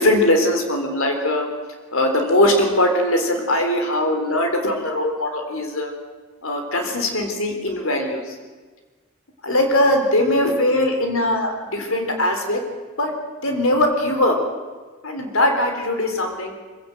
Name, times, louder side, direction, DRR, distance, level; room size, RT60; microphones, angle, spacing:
voice 1, 0.0-1.5 1.9-5.9 6.4-8.2 9.4-12.6 13.0-13.1 13.4-14.4 15.0-16.6, left 1 dB, 80° left, 4 dB, 3.6 m, -20 dB
23.0 x 16.5 x 8.0 m, 1.4 s
head